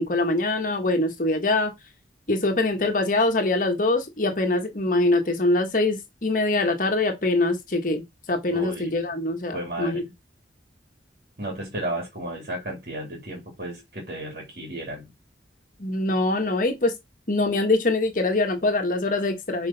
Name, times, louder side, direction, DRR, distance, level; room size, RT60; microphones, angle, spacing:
voice 1, 0.0-1.7 2.3-8.0 8.3-10.0 15.8-17.0 17.3-19.7, left 2 dB, 45° left, 1.4 m, -23 dB
voice 2, 8.5-9.0 9.5-10.1 11.4-15.1, right 1 dB, 55° right, 3.0 m, -33 dB
6.4 x 4.5 x 4.0 m
head